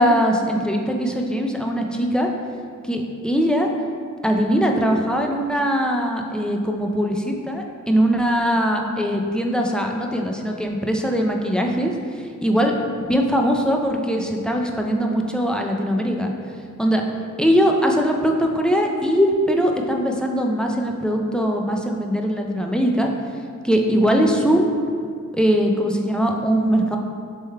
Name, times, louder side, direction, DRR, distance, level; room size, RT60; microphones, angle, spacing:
voice 1, 0.0-2.3 2.9-3.7 4.2-12.7 13.1-16.3 16.8-17.0 17.4-23.1 23.6-24.8 25.3-27.0, equal, 5° left, 2 dB, 0.4 m, -21 dB
6.5 x 3.4 x 2.2 m, 2.2 s
wide cardioid pair, 65°, 32 cm